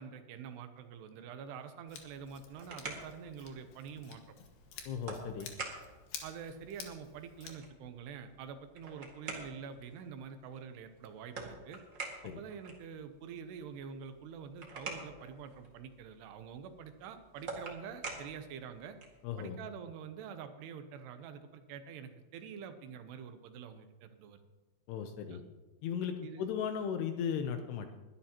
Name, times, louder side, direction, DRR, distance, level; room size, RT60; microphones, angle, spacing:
voice 1, 0.0-4.2 5.2-5.5 6.2-11.8 12.4-19.0 19.4-24.4 25.3-25.4 26.2-26.5, right 7 dB, 75° right, 8 dB, 2.6 m, -46 dB
Scissors, 1.9-7.5, left 7 dB, 60° left, 2.7 m, -51 dB
sound 1, 2.3-19.3, right 3 dB, 50° right, 1.4 m, -48 dB
voice 2, 4.9-5.5 12.2-12.4 19.2-19.6 24.9-25.4 25.8-28.0, left 7 dB, 80° left, 7 dB, 2.5 m, -36 dB
21.0 x 12.5 x 2.9 m, 1.2 s
omnidirectional pair, 5.3 m